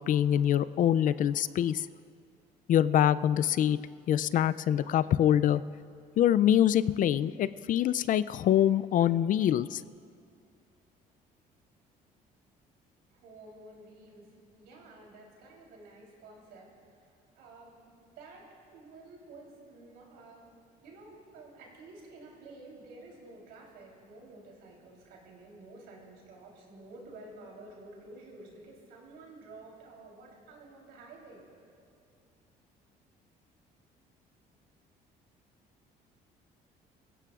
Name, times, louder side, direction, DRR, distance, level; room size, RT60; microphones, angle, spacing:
voice 1, 0.0-1.9 2.7-3.8 4.1-5.6 6.2-9.8, left 10 dB, 50° left, 16 dB, 0.4 m, -25 dB
voice 2, 13.1-16.9 17.4-31.4, right 2 dB, 90° right, -2 dB, 3.5 m, -51 dB
25.0 x 16.0 x 2.5 m, 2.4 s
cardioid pair, 110°, 17 cm